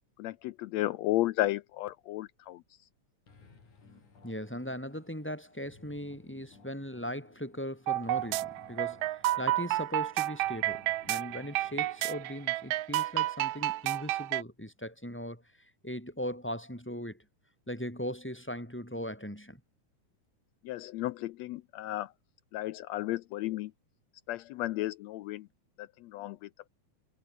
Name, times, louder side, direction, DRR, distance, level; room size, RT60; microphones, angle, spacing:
voice 1, 0.2-2.6 20.6-22.1 22.5-23.7 24.3-25.5 25.8-26.7, left 16 dB, 85° left, 1.5 m, -33 dB
sound 1, 3.3-12.8, left 4 dB, 65° left, 7.0 m, -59 dB
voice 2, 4.2-17.2 17.7-19.6, equal, 5° left, 6.9 m, -39 dB
sound 2, 7.9-14.4, right 15 dB, 85° right, 1.4 m, -30 dB
omnidirectional pair, 3.7 m